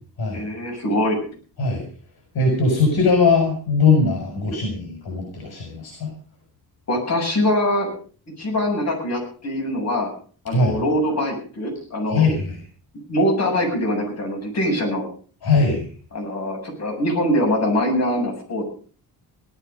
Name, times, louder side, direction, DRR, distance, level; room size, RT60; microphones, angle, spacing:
voice 1, 0.3-1.2 6.9-7.9 8.4-10.1 10.4-12.3 13.1-15.0 16.1-18.6, left 1 dB, 40° left, 0 dB, 7.6 m, -23 dB
voice 2, 2.4-6.1 10.5-10.8 12.1-12.6 15.4-15.8, left 4 dB, 70° left, 2 dB, 5.2 m, -20 dB
18.0 x 12.5 x 5.3 m, 0.43 s
wide cardioid pair, 165°, 38 cm